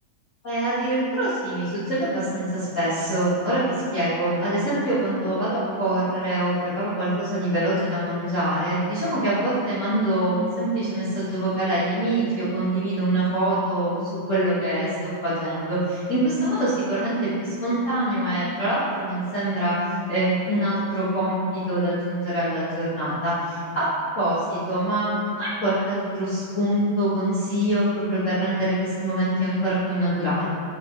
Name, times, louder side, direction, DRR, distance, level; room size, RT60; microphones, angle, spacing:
voice 1, 0.4-14.0 14.3-19.7 20.1-23.9 24.1-30.4, right 1 dB, 50° left, -12 dB, 0.9 m, -24 dB
8.6 x 3.3 x 3.5 m, 2.3 s
omnidirectional pair, 3.4 m